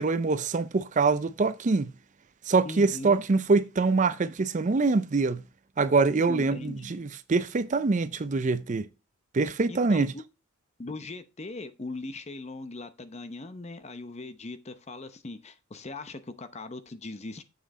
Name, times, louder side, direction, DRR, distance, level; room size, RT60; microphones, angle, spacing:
voice 1, 0.0-1.9 2.5-5.4 5.8-8.9 9.3-10.1, right 3 dB, 35° right, 0.5 m, -24 dB
voice 2, 2.6-3.2 6.3-7.0 9.7-10.2 10.8-17.4, left 2 dB, 30° left, 0.7 m, -40 dB
7.5 x 6.3 x 4.1 m
head